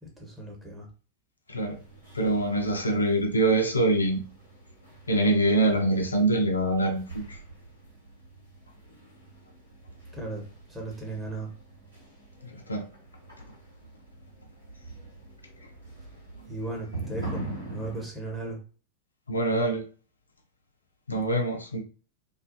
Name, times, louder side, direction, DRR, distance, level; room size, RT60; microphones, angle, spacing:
voice 1, 0.0-0.9 10.1-10.4 10.7-11.5 16.5-18.6, right 2 dB, 10° right, 1.0 m, -36 dB
sound 1, 1.6-18.1, right 2 dB, 80° right, 1.3 m, -44 dB
voice 2, 2.1-4.2 5.1-7.4 12.5-12.9 19.3-19.8 21.1-21.8, right 2 dB, 80° left, 0.4 m, -24 dB
2.4 x 2.3 x 2.5 m
figure-of-eight pair, 90°, 0 cm